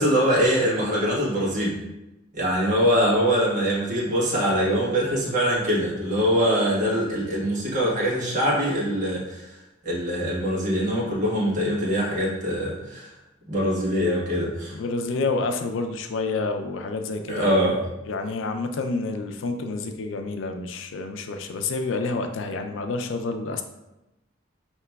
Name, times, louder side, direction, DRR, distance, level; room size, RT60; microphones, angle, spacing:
voice 1, 0.0-1.8 2.3-9.5 9.8-13.1 13.5-14.8 17.3-17.8, equal, 45° right, -5 dB, 1.3 m, -23 dB
voice 2, 14.7-17.7 18.1-23.6, left 3 dB, 80° left, 6 dB, 0.4 m, -28 dB
5.6 x 2.9 x 2.3 m, 0.96 s
head